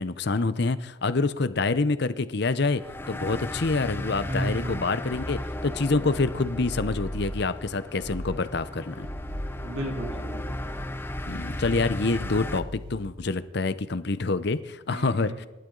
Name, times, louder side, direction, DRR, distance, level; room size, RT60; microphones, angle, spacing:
voice 1, 0.0-2.8 3.1-9.1 11.3-15.5, left 3 dB, 55° left, 13 dB, 0.8 m, -27 dB
sound 1, 2.7-12.6, left 1 dB, 10° left, 0.6 m, -36 dB
voice 2, 4.3-4.8 9.6-10.6 14.9-15.4, right 1 dB, 70° right, 1 dB, 3.3 m, -34 dB
sound 2, 5.0-7.6 8.0-8.5 8.9-13.2, equal, 45° right, 2.3 m, -39 dB
27.5 x 12.0 x 4.0 m, 1.1 s
head